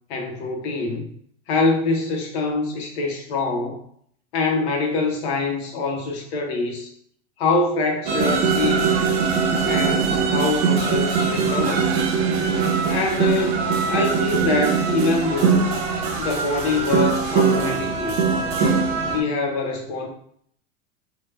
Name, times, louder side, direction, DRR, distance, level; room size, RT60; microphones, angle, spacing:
voice 1, 0.1-1.1 1.5-3.8 4.3-6.9 7.4-9.0 9.6-11.9 12.9-15.6 16.2-18.2 19.0-20.1, left 3 dB, 65° left, 2 dB, 0.8 m, -24 dB
sound 1, 8.1-19.2, right 5 dB, 45° right, 0.5 m, -21 dB
2.8 x 2.0 x 3.1 m, 0.65 s
supercardioid pair, 170°, 35 cm